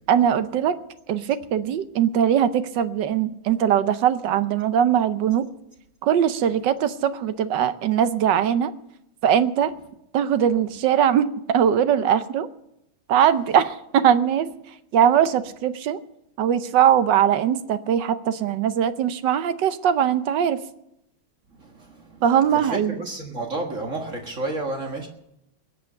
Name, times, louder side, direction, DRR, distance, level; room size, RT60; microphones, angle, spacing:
voice 1, 0.1-0.8 1.1-5.5 6.0-8.7 9.2-9.8 10.1-12.5 13.1-14.5 14.9-16.0 16.4-20.6 22.2-23.0, right 9 dB, 65° right, 1.3 m, -21 dB
voice 2, 21.6-22.2 22.5-25.1, right 2 dB, 40° right, 1.9 m, -31 dB
21.5 x 8.2 x 6.5 m
omnidirectional pair, 2.2 m